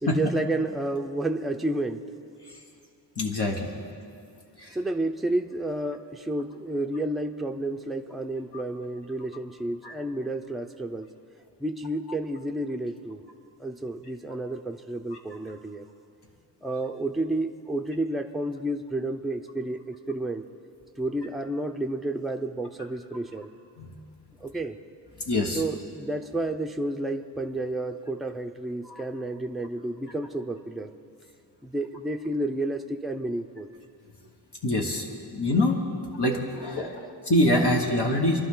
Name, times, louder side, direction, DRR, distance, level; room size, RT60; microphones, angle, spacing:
voice 1, 0.0-2.1 4.7-11.1 11.6-13.2 13.6-15.9 16.6-20.5 21.0-23.5 24.4-24.8 25.5-30.9 31.6-33.7 36.5-36.9, right 2 dB, ahead, 5 dB, 0.6 m, -31 dB
voice 2, 3.2-3.7 4.6-4.7 9.8-9.9 23.8-24.0 25.3-25.6 28.9-29.0 34.6-35.1 35.3-35.8 36.2-38.4, left 1 dB, 65° left, -1 dB, 1.5 m, -25 dB
26.5 x 12.0 x 3.9 m, 2.4 s
wide cardioid pair, 85°, 44 cm